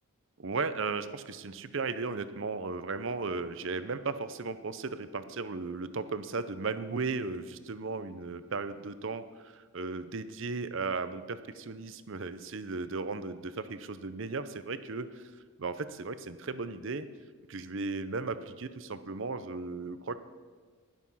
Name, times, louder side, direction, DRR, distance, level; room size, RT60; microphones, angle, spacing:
voice 1, 0.4-15.2 15.6-17.1 17.5-20.2, right 4 dB, 60° right, 12 dB, 0.7 m, -36 dB
12.0 x 10.5 x 5.6 m, 1.5 s
head